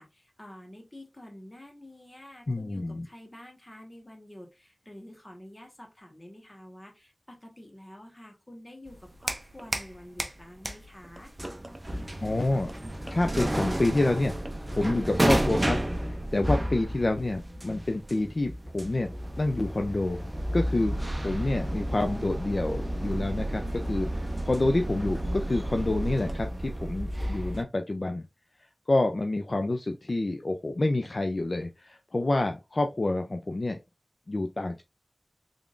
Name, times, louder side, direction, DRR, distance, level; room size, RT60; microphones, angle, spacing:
voice 1, 0.0-11.3, left 1 dB, 25° left, 1.3 m, -48 dB
voice 2, 2.5-3.1 12.2-12.7 13.1-14.4 14.7-19.1 19.4-28.2 28.9-33.8 34.3-34.8, left 2 dB, 55° left, 0.4 m, -28 dB
sound 1, 8.9-9.9 10.2-27.6, right 1 dB, 25° right, 0.6 m, -31 dB
3.6 x 3.5 x 2.5 m
wide cardioid pair, 55°, 0 cm